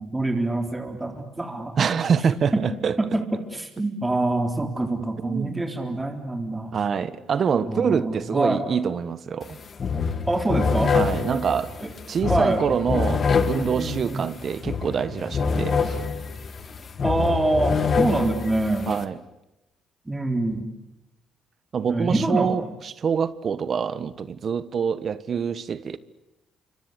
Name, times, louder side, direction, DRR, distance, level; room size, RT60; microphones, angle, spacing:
voice 1, 0.0-1.8 2.5-2.6 3.0-6.8 7.6-8.6 10.3-11.0 11.8-11.9 12.2-12.6 13.7-14.3 17.0-18.9 20.1-20.7 21.9-22.5, right 2 dB, 15° right, 3.7 m, -25 dB
voice 2, 1.8-3.0 5.2-5.7 6.7-9.6 10.9-11.7 12.1-16.0 18.9-19.2 21.7-26.0, right 6 dB, 50° right, 1.3 m, -25 dB
sound 1, 9.4-9.5 9.8-19.0, left 5 dB, 45° left, 2.2 m, -26 dB
27.5 x 25.0 x 8.4 m
cardioid pair, 95°, 0 cm